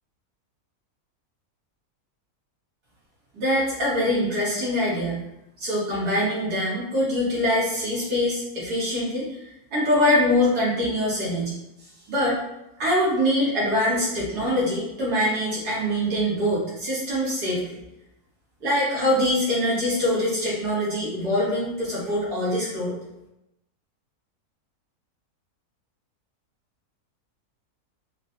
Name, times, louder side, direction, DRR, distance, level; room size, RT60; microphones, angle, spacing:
voice 1, 3.3-5.2 5.6-9.4 9.7-11.6 12.1-12.4 12.8-17.6 18.6-22.9, left 1 dB, 90° right, -8 dB, 2.0 m, -24 dB
4.3 x 2.2 x 2.6 m, 0.88 s
omnidirectional pair, 1.6 m